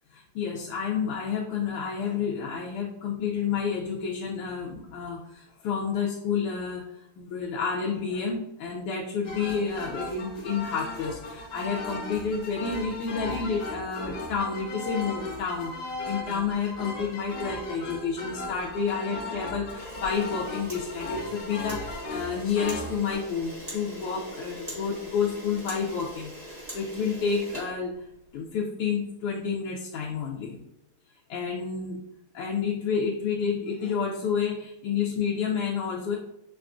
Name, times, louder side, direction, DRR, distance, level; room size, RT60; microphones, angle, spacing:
voice 1, 0.3-6.8 7.2-27.9 28.3-30.6 31.3-32.0 32.3-36.2, left 6 dB, 85° left, -2 dB, 1.5 m, -30 dB
sound 1, 9.2-23.2, left 2 dB, 65° left, 1.3 m, -37 dB
Camera, 19.7-28.4, equal, 20° right, 1.1 m, -42 dB
6.0 x 2.3 x 2.4 m, 0.83 s
omnidirectional pair, 2.4 m